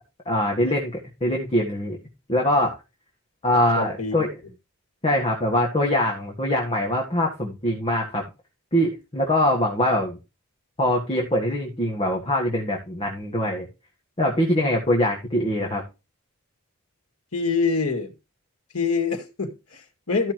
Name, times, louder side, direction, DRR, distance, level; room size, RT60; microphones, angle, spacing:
voice 1, 0.3-0.9 1.2-2.0 2.3-2.7 3.4-4.3 5.0-8.2 8.7-10.2 10.8-13.7 14.2-15.8, left 1 dB, 25° left, 1.8 m, -23 dB
voice 2, 3.8-4.3 17.3-18.1 18.7-20.3, left 4 dB, 85° left, 2.1 m, -25 dB
14.5 x 5.8 x 3.0 m
head